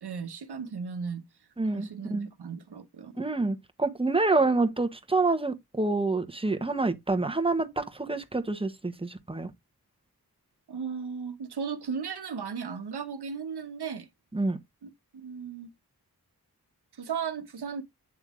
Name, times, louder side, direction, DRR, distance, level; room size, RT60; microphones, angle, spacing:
voice 1, 0.0-1.2 1.7-3.2 10.7-14.1 14.8-15.7 17.0-17.8, right 6 dB, 90° right, 1.0 m, -36 dB
voice 2, 1.6-2.3 3.2-9.5 14.3-14.6, right 3 dB, 15° right, 1.1 m, -27 dB
8.4 x 3.6 x 3.6 m
cardioid pair, 55°, 38 cm